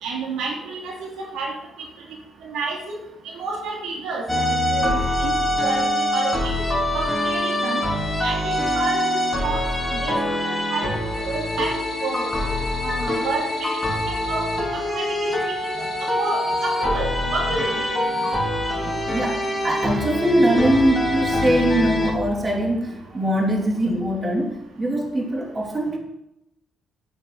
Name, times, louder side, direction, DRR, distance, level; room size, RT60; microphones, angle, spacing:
voice 1, 0.0-1.5 2.4-3.0 3.2-5.3 5.6-6.6 6.9-7.8 8.2-10.9 11.2-11.7 12.0-12.3 12.8-17.8 18.1-18.3 18.8-18.9 19.7-19.8, right 3 dB, 85° right, 0 dB, 2.7 m, -30 dB
sound 1, 4.3-22.1, left 1 dB, 10° left, 4.0 m, -24 dB
voice 2, 18.8-26.0, right 1 dB, 25° right, 1 dB, 3.1 m, -22 dB
10.0 x 8.8 x 6.0 m, 0.85 s
cardioid pair, 90°, 0 cm